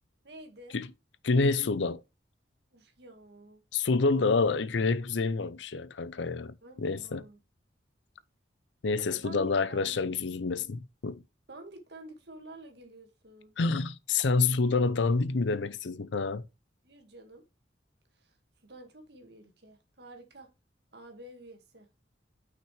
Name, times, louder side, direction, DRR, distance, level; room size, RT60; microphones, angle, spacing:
voice 1, 0.2-0.8 2.7-3.6 4.0-4.4 6.6-7.4 9.0-10.0 11.5-13.6 16.8-17.4 18.1-18.4 18.6-20.5 20.9-21.9, right 1 dB, 60° right, 2.0 m, -50 dB
voice 2, 1.2-2.0 3.7-7.2 8.8-11.2 13.6-16.4, left 4 dB, 75° left, 0.6 m, -28 dB
6.0 x 5.9 x 4.9 m
head